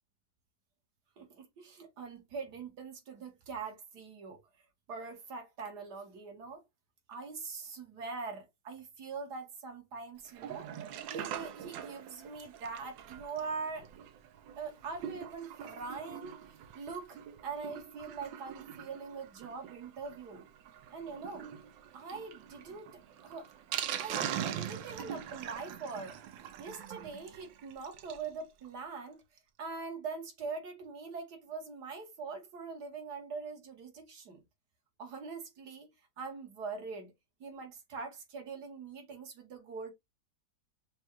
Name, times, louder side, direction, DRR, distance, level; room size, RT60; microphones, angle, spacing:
voice 1, 1.2-4.4 4.9-6.6 7.1-10.7 11.1-13.9 14.6-16.4 16.7-20.5 20.9-21.5 21.9-23.5 24.0-26.2 26.6-29.2 29.6-34.4 35.0-35.9 36.2-37.1 37.4-39.9, right 4 dB, 60° right, 1.7 m, -43 dB
Sink (filling or washing), 10.3-28.3 28.6-28.7 28.9-29.0 29.4-29.5, right 10 dB, 80° right, 1.4 m, -43 dB
6.1 x 2.3 x 2.9 m
omnidirectional pair, 2.1 m